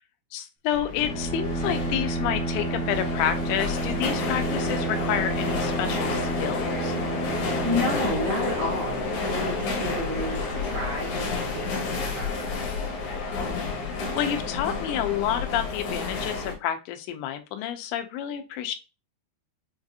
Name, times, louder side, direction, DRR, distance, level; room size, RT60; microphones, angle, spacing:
voice 1, 0.3-7.0 13.1-18.8, left 10 dB, 85° left, 7 dB, 2.9 m, -29 dB
sound 1, 0.7-16.5, left 3 dB, 70° left, 1.9 m, -30 dB
Bowed string instrument, 0.9-8.9, right 3 dB, 50° left, 1.2 m, -31 dB
voice 2, 7.6-12.6, equal, 80° right, -4 dB, 1.6 m, -32 dB
6.8 x 2.5 x 2.6 m, 0.30 s
omnidirectional pair, 5.1 m